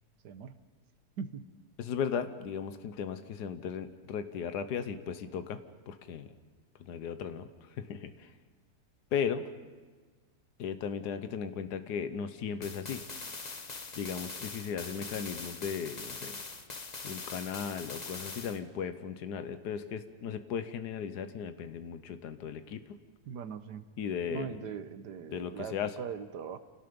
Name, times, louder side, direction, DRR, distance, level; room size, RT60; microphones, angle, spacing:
voice 1, 0.2-0.5 1.2-1.4 23.3-23.9 24.3-26.6, right 7 dB, 85° right, 11 dB, 1.6 m, -40 dB
voice 2, 1.8-5.6 5.9-6.3 6.8-8.3 9.1-9.5 10.6-13.0 14.0-16.4 17.0-22.8 24.0-24.6 25.3-25.9, left 7 dB, 80° left, 10 dB, 1.5 m, -36 dB
sound 1, 12.6-18.6, left 3 dB, 30° left, 1.1 m, -42 dB
28.0 x 18.0 x 5.3 m, 1.4 s
omnidirectional pair, 1.7 m